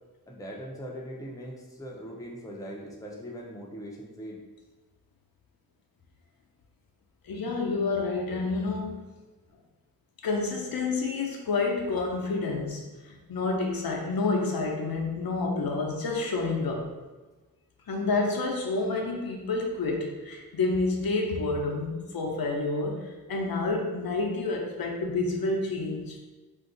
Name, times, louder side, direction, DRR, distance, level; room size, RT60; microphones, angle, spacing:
voice 1, 0.3-4.4, equal, 10° left, -2 dB, 0.5 m, -40 dB
voice 2, 7.2-9.0 10.2-16.9 17.9-26.2, left 3 dB, 75° left, 0 dB, 0.6 m, -29 dB
2.5 x 2.2 x 3.7 m, 1.2 s
wide cardioid pair, 100°, 35 cm